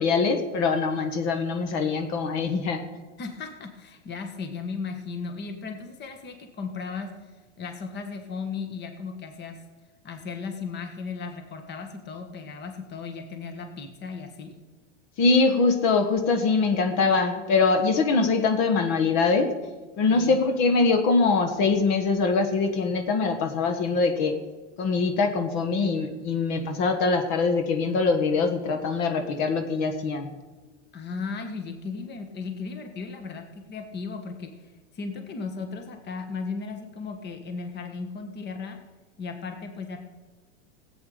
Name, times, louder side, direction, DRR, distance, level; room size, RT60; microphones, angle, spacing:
voice 1, 0.0-2.8 15.2-19.5 20.0-24.3 24.8-30.3, left 4 dB, 50° left, 7 dB, 1.5 m, -23 dB
voice 2, 3.2-7.3 7.6-9.6 10.0-14.6 20.1-20.4 30.9-38.8 39.2-40.0, left 4 dB, 30° left, 6 dB, 1.5 m, -36 dB
15.5 x 8.6 x 5.0 m, 1.2 s
supercardioid pair, 120°, 35 cm